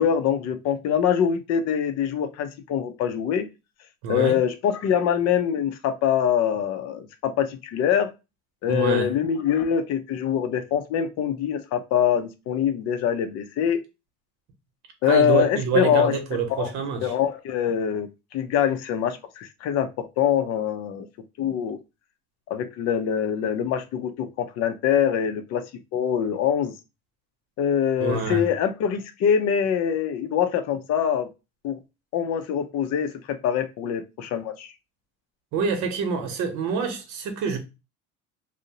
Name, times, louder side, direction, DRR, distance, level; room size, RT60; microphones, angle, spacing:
voice 1, 0.0-3.5 4.1-8.1 8.6-13.8 15.0-16.1 16.5-16.7 17.0-21.1 21.4-21.8 22.5-25.6 25.9-26.7 27.6-31.3 31.6-31.8 32.1-34.7, left 8 dB, 55° left, 0.5 m, -24 dB
voice 2, 4.0-4.4 8.7-9.1 15.0-17.1 28.0-28.4 35.5-37.6, right 5 dB, 65° right, 0.9 m, -26 dB
2.6 x 2.0 x 2.7 m
supercardioid pair, 100°, 31 cm